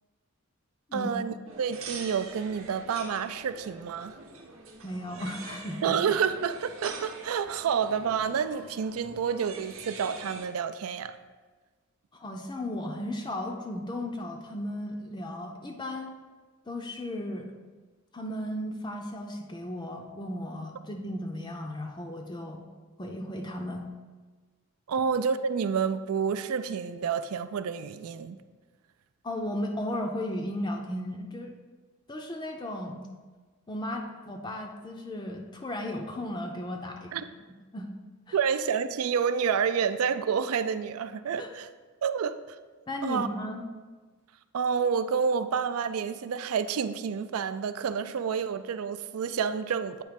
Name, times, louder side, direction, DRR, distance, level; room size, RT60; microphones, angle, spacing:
voice 1, 0.9-4.1 5.8-11.1 24.9-28.4 37.1-37.2 38.3-41.7 42.0-42.4 43.0-43.3 44.5-50.0, right 6 dB, 85° right, 11 dB, 0.4 m, -29 dB
sound 1, 1.5-10.5, right 4 dB, 65° right, 0.8 m, -44 dB
voice 2, 4.8-6.0 12.1-16.1 16.7-17.5 18.1-22.6 23.0-23.9 29.2-31.5 32.1-33.0 33.7-37.2 37.7-37.9 38.3-38.4 41.4-41.5 42.9-43.6, left 1 dB, 20° left, 2 dB, 0.4 m, -35 dB
8.6 x 3.1 x 5.1 m, 1.4 s
head